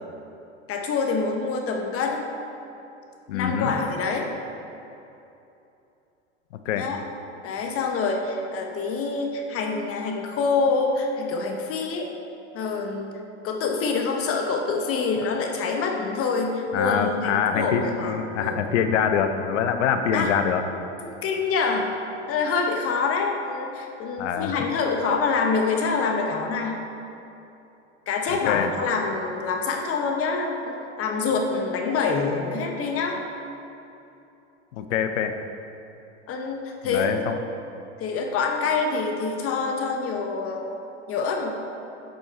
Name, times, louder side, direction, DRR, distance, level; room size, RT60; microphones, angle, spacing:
voice 1, 0.7-2.3 3.3-4.3 6.8-7.0 7.4-12.1 12.5-13.1 13.4-18.6 20.1-20.3 21.2-21.9 22.3-26.8 28.1-33.2 36.3-37.2 38.0-40.6 41.1-41.5, left 4 dB, 40° left, 2 dB, 1.0 m, -26 dB
voice 2, 3.3-3.7 6.7-6.9 16.7-20.6 24.2-24.6 28.3-28.7 34.8-35.3 36.8-37.4, left 7 dB, 80° left, 8 dB, 0.7 m, -24 dB
7.7 x 5.4 x 4.3 m, 2.8 s
hypercardioid pair, 95°, 36 cm